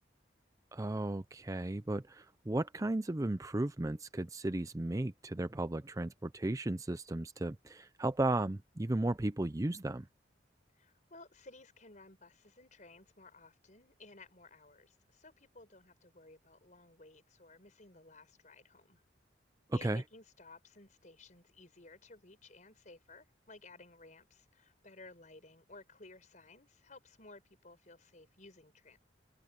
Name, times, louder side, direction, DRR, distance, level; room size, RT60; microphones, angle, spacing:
voice 1, 0.7-10.1 19.7-20.0, right 2 dB, 20° right, 0.5 m, -35 dB
voice 2, 10.8-19.0 19.7-29.0, left 3 dB, 45° left, 5.1 m, -56 dB
open air
head